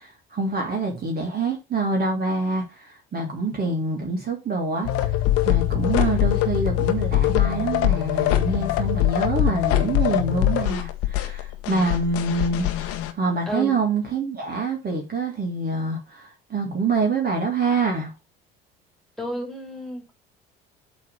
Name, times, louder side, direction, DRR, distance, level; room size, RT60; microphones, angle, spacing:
voice 1, 0.0-5.2 5.4-18.1, right 3 dB, 30° right, 2.3 m, -26 dB
sound 1, 4.8-13.1, left 13 dB, 50° left, 1.1 m, -23 dB
voice 2, 13.5-13.8 19.2-20.1, equal, ahead, 3.3 m, -31 dB
8.3 x 3.5 x 6.6 m
figure-of-eight pair, 60°, 29 cm